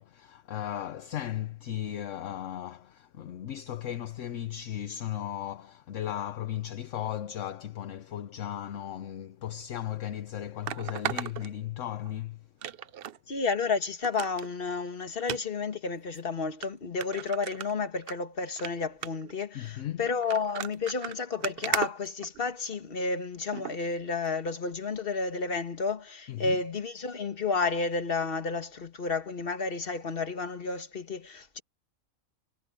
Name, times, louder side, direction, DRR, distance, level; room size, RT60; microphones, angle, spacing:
voice 1, 0.0-12.5 19.5-20.1 26.3-26.6, left 11 dB, 65° left, 1.1 m, -36 dB
sound 1, 9.6-9.7 10.7-12.1 12.6-13.2 13.5-13.6 14.0-14.5 15.2-15.4 16.1-16.2 16.6-16.7 17.0-18.1 18.5-18.7 19.0-19.3 20.1-22.7 23.5-23.7 24.3-24.4, right 10 dB, 60° right, 0.7 m, -36 dB
voice 2, 13.3-31.6, left 4 dB, 45° left, 1.7 m, -31 dB
omnidirectional pair, 1.4 m